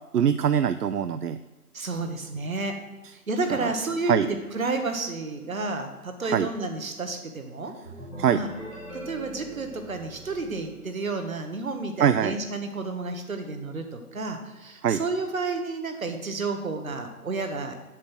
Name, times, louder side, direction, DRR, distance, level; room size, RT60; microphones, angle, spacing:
voice 1, 0.1-1.4 3.6-3.7 4.1-4.3 6.2-6.5 8.2-8.4 12.0-12.4 14.8-15.0, right 8 dB, 80° right, 12 dB, 0.6 m, -23 dB
voice 2, 1.7-2.8 3.3-7.7 8.3-8.5 8.9-17.7, right 3 dB, 60° right, 6 dB, 1.6 m, -31 dB
sound 1, 7.8-11.5, right 1 dB, 5° right, 1.6 m, -42 dB
7.4 x 6.8 x 6.3 m, 1.2 s
figure-of-eight pair, 160°, 46 cm